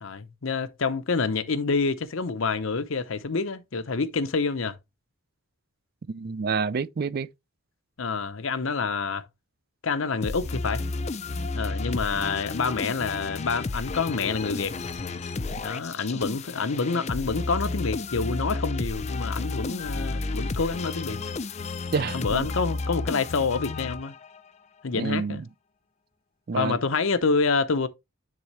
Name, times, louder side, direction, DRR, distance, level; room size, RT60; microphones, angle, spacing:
voice 1, 0.0-4.7 8.0-9.2 9.8-10.8 11.5-14.7 15.6-21.2 22.1-24.1 24.8-25.4 26.5-27.9, left 4 dB, 65° left, 0.7 m, -27 dB
voice 2, 6.1-7.3 21.9-22.5 25.0-25.4 26.5-26.8, right 5 dB, 45° right, 0.4 m, -28 dB
sound 1, 10.2-24.5, left 3 dB, 30° left, 0.4 m, -32 dB
9.9 x 3.8 x 3.2 m
head